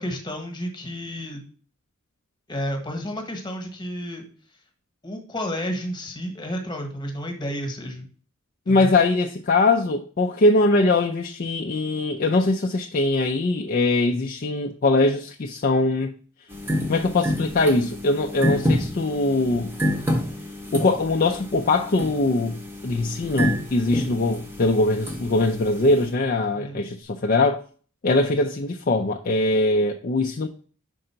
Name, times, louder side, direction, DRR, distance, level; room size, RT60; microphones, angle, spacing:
voice 1, 0.0-1.4 2.5-4.2 5.0-8.1 8.7-8.9 26.5-26.8, equal, 20° left, 1.2 m, -31 dB
voice 2, 8.7-16.1 16.9-19.7 20.7-22.6 22.8-27.6 28.0-30.5, left 2 dB, 40° left, 0.4 m, -22 dB
sound 1, 16.5-26.1, equal, 10° right, 0.8 m, -29 dB
5.4 x 3.8 x 5.6 m
head